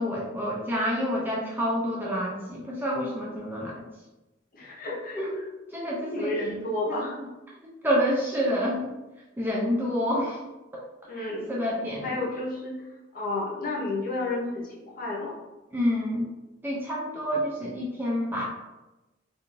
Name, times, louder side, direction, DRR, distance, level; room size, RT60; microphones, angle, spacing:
voice 1, 0.0-3.8 5.2-5.4 5.7-6.3 6.9-7.1 7.8-8.9 9.4-10.4 11.1-12.1 15.7-16.2 16.6-18.4, equal, 10° right, -4 dB, 0.4 m, -28 dB
voice 2, 4.5-5.5 6.1-7.1 11.1-11.5 12.0-12.8 13.1-15.4, left 2 dB, 45° left, -3 dB, 0.7 m, -31 dB
2.5 x 2.4 x 3.0 m, 1.0 s
head